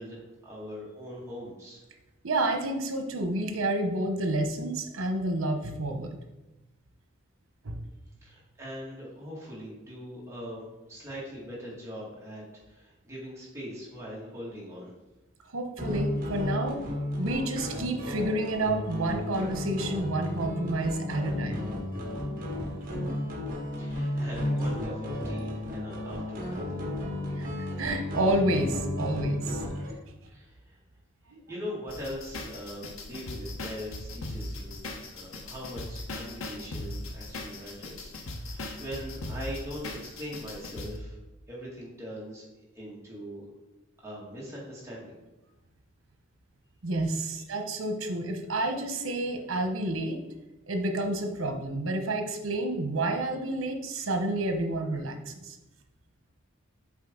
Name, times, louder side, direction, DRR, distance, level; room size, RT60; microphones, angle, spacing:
voice 1, 0.0-1.8 8.2-14.9 23.8-26.8 30.3-30.8 31.3-34.7 35.1-41.2 41.5-42.4 42.8-43.4 44.0-45.2, equal, 15° right, -6 dB, 1.9 m, -41 dB
voice 2, 2.2-6.2 7.6-7.8 15.5-21.7 27.4-29.6 31.3-31.4 46.8-50.2 50.7-55.6, right 2 dB, 90° right, 5 dB, 0.9 m, -30 dB
sound 1, 15.8-29.9, left 1 dB, 45° right, 1.5 m, -33 dB
sound 2, 31.9-40.9, left 2 dB, 85° left, 0.9 m, -39 dB
7.4 x 4.6 x 3.7 m, 1.1 s
head